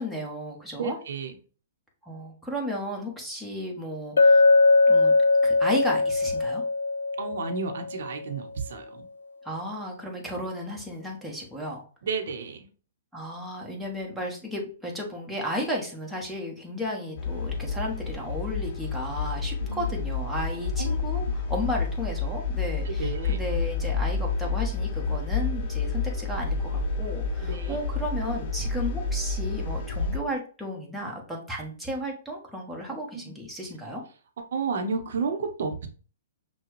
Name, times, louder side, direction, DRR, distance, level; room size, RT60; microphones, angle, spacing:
voice 1, 0.0-1.0 2.1-4.4 4.9-5.1 5.4-6.6 9.4-11.8 13.1-34.0, equal, ahead, -3 dB, 1.2 m, -34 dB
voice 2, 0.8-1.4 7.2-9.1 12.0-12.7 19.7-19.9 20.8-20.9 22.8-23.4 27.4-27.8 34.4-35.9, right 5 dB, 65° right, 6 dB, 0.8 m, -32 dB
Chink clink, 4.2-8.2, left 3 dB, 85° left, 0.3 m, -20 dB
sound 1, 17.2-30.2, left 4 dB, 40° left, 0.7 m, -29 dB
5.8 x 2.3 x 3.1 m, 0.39 s
hypercardioid pair, 135°, 0 cm